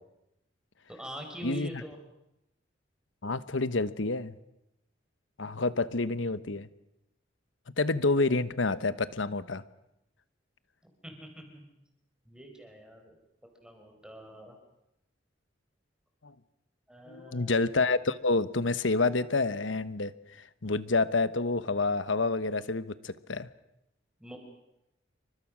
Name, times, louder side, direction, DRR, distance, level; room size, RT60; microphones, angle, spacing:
voice 1, 0.9-2.0 11.0-11.6 12.2-13.2 13.6-14.5 16.9-17.6 24.2-24.4, right 1 dB, 5° right, 3 dB, 4.7 m, -44 dB
voice 2, 3.2-4.4 5.4-6.7 7.8-9.6 16.2-16.3 17.1-23.5, left 3 dB, 80° left, 13 dB, 1.2 m, -28 dB
28.0 x 25.0 x 6.3 m, 0.86 s
head